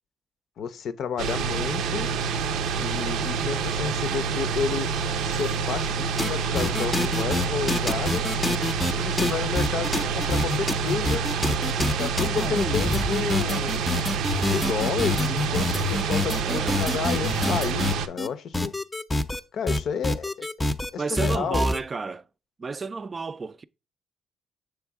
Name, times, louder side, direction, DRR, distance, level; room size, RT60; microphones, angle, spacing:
voice 1, 0.6-2.1 2.8-4.9 5.2-8.2 9.0-11.2 12.0-13.9 14.4-18.7 19.5-20.3 20.9-21.7, left 7 dB, 70° left, 0.6 m, -31 dB
sound 1, 1.2-18.1, right 5 dB, 85° right, 0.5 m, -27 dB
sound 2, 6.2-6.3 6.5-18.3 18.5-19.4 19.7-20.9 21.2-21.8, left 2 dB, 15° left, 0.5 m, -26 dB
voice 2, 16.4-16.8 21.0-22.3 22.6-23.6, right 4 dB, 35° right, 0.3 m, -31 dB
7.0 x 3.4 x 4.6 m
cardioid pair, 90°, 0 cm